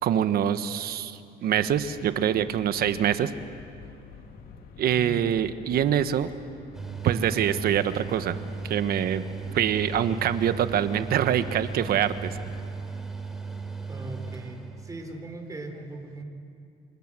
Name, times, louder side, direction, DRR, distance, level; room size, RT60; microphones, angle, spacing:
voice 1, 0.0-3.3 4.8-6.3 7.0-8.4 8.6-9.2 9.5-12.4, right 9 dB, 65° right, 11 dB, 1.3 m, -25 dB
sound 1, 1.6-12.7, left 6 dB, 65° left, 2.4 m, -47 dB
voice 2, 4.9-5.2 13.9-16.2, right 2 dB, 20° right, 4 dB, 4.4 m, -39 dB
Mechanical fan, 6.7-15.2, right 4 dB, 5° right, 3.6 m, -36 dB
29.0 x 26.5 x 7.7 m, 2.5 s
cardioid pair, 110°, 17 cm